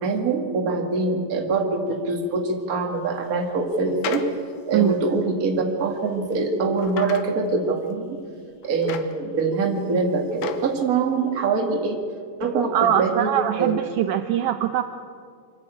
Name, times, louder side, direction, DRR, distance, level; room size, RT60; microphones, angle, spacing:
voice 1, 0.0-4.2 4.7-8.2 8.6-12.0 12.4-13.3 13.6-13.7, right 4 dB, 35° right, 2 dB, 1.6 m, -24 dB
sound 1, 1.9-2.0 3.1-4.3 4.9-5.0 5.9-6.3 6.8-7.3 7.9-8.0 8.6-9.6 9.9-10.7 11.2-11.3, left 8 dB, 80° left, 2.9 m, -35 dB
voice 2, 12.7-14.8, right 11 dB, 85° right, 8 dB, 1.7 m, -22 dB
24.0 x 12.5 x 9.1 m, 2.2 s
omnidirectional pair, 4.4 m